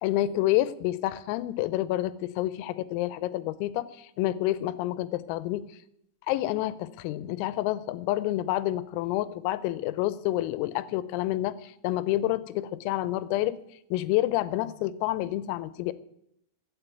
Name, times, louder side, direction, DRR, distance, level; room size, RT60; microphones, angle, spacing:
voice 1, 0.0-5.7 6.3-13.6 13.9-15.9, left 15 dB, 85° left, 16 dB, 3.4 m, -28 dB
15.0 x 7.4 x 9.2 m, 0.75 s
omnidirectional pair, 6.0 m